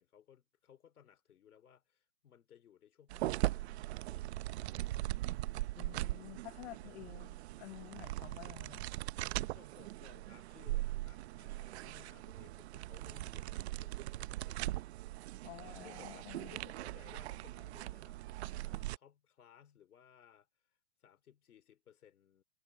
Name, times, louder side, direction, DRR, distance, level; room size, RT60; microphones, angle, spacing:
voice 1, 0.0-4.3 4.5-5.0 6.8-7.2 9.5-14.9 15.8-18.2 18.5-20.5 21.0-22.4, left 9 dB, 70° left, 4.1 m, -62 dB
sound 1, 3.1-19.0, right 17 dB, 45° right, 1.0 m, -40 dB
voice 2, 5.7-8.9 15.4-16.6, left 17 dB, 45° left, 1.1 m, -51 dB
hypercardioid pair, 135°, 45 cm